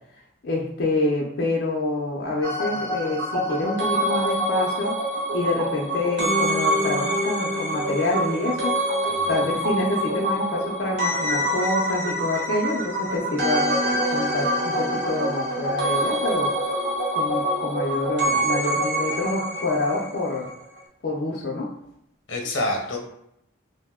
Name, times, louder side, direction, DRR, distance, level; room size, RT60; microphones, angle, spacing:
voice 1, 0.4-4.9 5.3-8.8 9.3-16.5 17.2-20.5 21.0-21.7, left 2 dB, 60° left, -3 dB, 0.5 m, -27 dB
sound 1, 2.4-20.5 20.8-20.9, equal, 65° right, 1.0 m, -25 dB
voice 2, 9.1-9.5 22.3-23.0, left 1 dB, 85° left, 2 dB, 0.7 m, -28 dB
2.6 x 2.1 x 3.5 m, 0.76 s
head